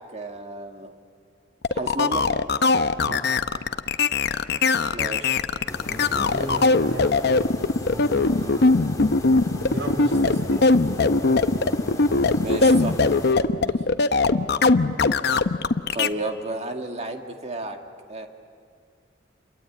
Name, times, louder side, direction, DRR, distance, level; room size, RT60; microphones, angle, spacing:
voice 1, 0.1-0.9 1.7-2.2 4.9-5.4 12.4-12.9 15.9-17.8 18.1-18.3, right 2 dB, 35° right, 3 dB, 2.0 m, -31 dB
sound 1, 1.6-16.1, left 3 dB, 60° left, 0.8 m, -20 dB
sound 2, 5.7-13.4, left 1 dB, 20° left, 3.0 m, -36 dB
voice 2, 5.8-7.1 7.9-8.7 9.7-10.6 13.6-13.8, right 1 dB, 75° right, 4 dB, 3.8 m, -35 dB
28.5 x 22.5 x 8.8 m, 2.3 s
head